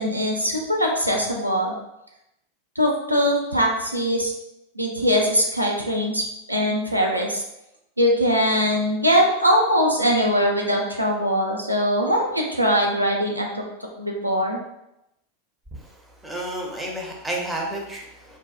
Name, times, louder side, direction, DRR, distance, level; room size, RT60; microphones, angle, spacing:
voice 1, 0.0-1.7 2.8-4.3 4.8-7.4 8.0-13.6 14.0-14.6, equal, 85° right, 0 dB, 0.3 m, -21 dB
voice 2, 16.2-18.4, right 1 dB, 10° right, -1 dB, 0.5 m, -31 dB
2.5 x 2.1 x 2.3 m, 0.87 s
figure-of-eight pair, 90°, 0 cm